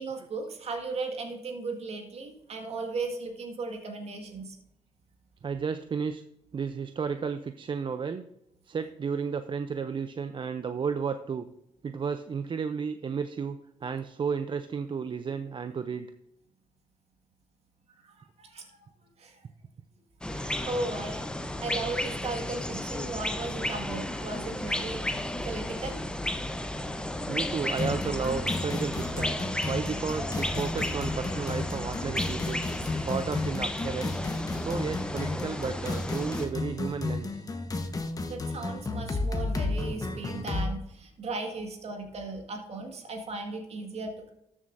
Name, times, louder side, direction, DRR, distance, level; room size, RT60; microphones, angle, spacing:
voice 1, 0.0-4.6 18.0-18.7 19.2-19.4 20.3-21.3 21.6-26.0 38.3-44.3, right 3 dB, 60° right, 3 dB, 1.9 m, -36 dB
voice 2, 5.4-6.2 6.5-8.2 8.7-11.5 11.8-16.1 27.3-29.4 29.7-32.6 33.0-34.2 34.6-37.4, right 6 dB, 45° right, 10 dB, 0.5 m, -33 dB
sound 1, 20.2-36.5, left 1 dB, 5° left, 0.9 m, -33 dB
sound 2, 27.8-40.7, left 2 dB, 30° left, 1.2 m, -33 dB
13.5 x 7.2 x 2.6 m, 0.82 s
supercardioid pair, 65°, 12 cm